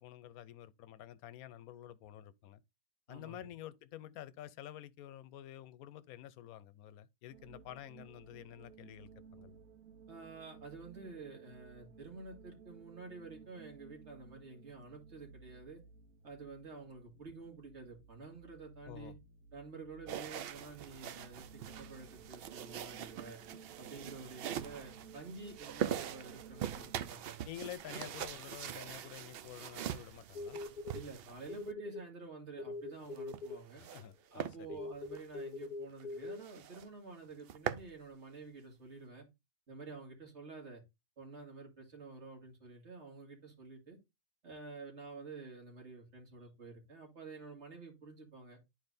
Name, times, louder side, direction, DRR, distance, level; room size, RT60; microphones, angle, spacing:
voice 1, 0.0-2.6 3.1-9.6 18.8-19.2 27.4-30.6 33.8-34.8, left 12 dB, 85° left, 1.1 m, -50 dB
voice 2, 3.1-3.5 10.1-15.8 16.2-19.1 19.5-23.4 23.7-27.5 30.9-33.9 34.3-39.3 39.7-40.8 41.2-44.0 44.4-48.6, right 4 dB, 50° right, 2.6 m, -50 dB
sound 1, 7.3-27.1, right 6 dB, 85° right, 1.2 m, -57 dB
sound 2, 20.1-31.7 33.0-34.1 34.4-34.6 35.1-35.2 35.6-35.7 36.0-36.1 36.4-36.9 37.2-37.9, right 10 dB, 65° right, 0.6 m, -42 dB
sound 3, 30.3-31.0 31.5-32.0 32.6-33.6 34.7-36.4, left 3 dB, 70° left, 0.4 m, -42 dB
10.5 x 4.5 x 2.6 m
omnidirectional pair, 1.5 m